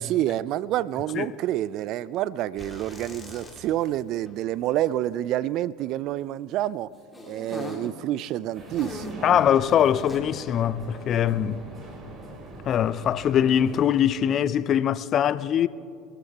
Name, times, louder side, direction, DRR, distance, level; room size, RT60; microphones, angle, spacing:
voice 1, 0.0-6.9 7.2-9.4, right 13 dB, 55° right, 0.4 m, -28 dB
sound 1, 2.6-4.0 4.2-4.4 7.1-7.9 8.7-9.3 10.1-10.2, left 2 dB, 15° left, 2.4 m, -39 dB
sound 2, 8.5-13.9, right 2 dB, 35° right, 4.0 m, -42 dB
voice 2, 9.2-11.6 12.7-15.7, left 9 dB, 45° left, 0.5 m, -22 dB
23.0 x 14.5 x 2.9 m
hypercardioid pair, 75°, 0 cm